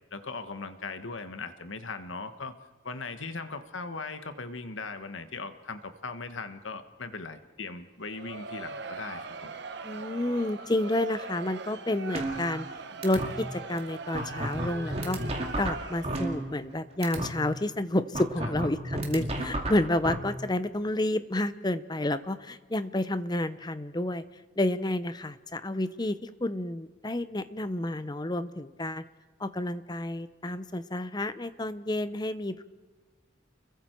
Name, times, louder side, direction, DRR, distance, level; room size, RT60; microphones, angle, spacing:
voice 1, 0.1-2.5 2.8-9.5 18.4-18.5 19.4-19.5, left 4 dB, 75° left, 9 dB, 1.4 m, -39 dB
Crowd, 8.0-16.5, right 4 dB, 60° right, 1.3 m, -41 dB
voice 2, 9.8-12.7 13.0-15.2 15.6-24.2 24.6-29.0 29.4-32.6, left 1 dB, 20° left, 13 dB, 0.7 m, -30 dB
sound 1, 12.1-12.7 13.0-13.3 13.8-13.9 14.1-16.7 17.0-17.3 18.1-20.1, right 1 dB, 30° right, 2.4 m, -31 dB
30.0 x 22.0 x 4.6 m, 1.3 s
head